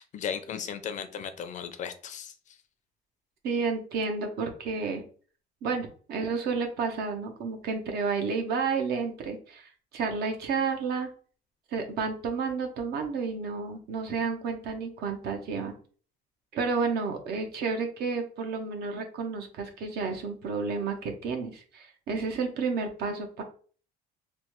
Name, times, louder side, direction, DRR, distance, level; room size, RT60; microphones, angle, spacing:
voice 1, 0.0-2.6, left 7 dB, 45° left, 10 dB, 0.4 m, -36 dB
voice 2, 3.4-5.0 5.6-11.1 11.7-15.7 16.5-23.4, right 4 dB, 70° right, 5 dB, 0.7 m, -31 dB
3.2 x 2.1 x 3.0 m, 0.41 s
cardioid pair, 110°, 17 cm